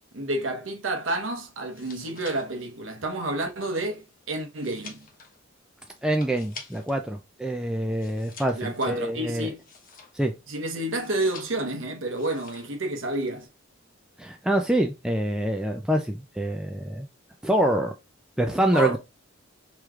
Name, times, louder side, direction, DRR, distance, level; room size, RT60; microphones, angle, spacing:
voice 1, 0.1-5.0 8.5-9.6 10.5-13.5 18.7-19.0, right 2 dB, 70° right, 1.0 m, -29 dB
sound 1, 1.6-7.1 7.4-10.4 10.9-11.8 12.1-12.8 13.1-13.5, left 4 dB, 45° left, 1.0 m, -48 dB
voice 2, 6.0-9.5 10.1-10.3 14.2-17.1 17.4-17.9 18.4-19.0, right 1 dB, 5° right, 0.3 m, -25 dB
4.8 x 3.0 x 2.4 m
head